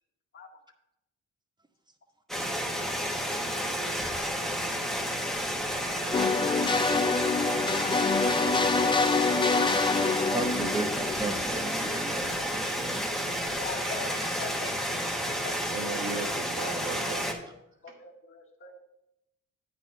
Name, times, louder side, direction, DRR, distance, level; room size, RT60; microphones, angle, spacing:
sound 1, 2.3-17.3, equal, ahead, 1.4 m, -31 dB
sound 2, 6.1-11.9, left 4 dB, 15° left, 0.4 m, -26 dB
voice 1, 10.3-13.1 13.8-14.7, right 2 dB, 15° right, 6 dB, 1.0 m, -36 dB
voice 2, 13.5-14.8 15.4-15.6 17.4-17.5 17.8-18.8, left 4 dB, 45° left, 0 dB, 1.9 m, -41 dB
voice 3, 15.7-17.3, right 4 dB, 45° right, 0 dB, 2.0 m, -36 dB
9.0 x 4.2 x 6.6 m, 0.83 s
cardioid pair, 90°, 30 cm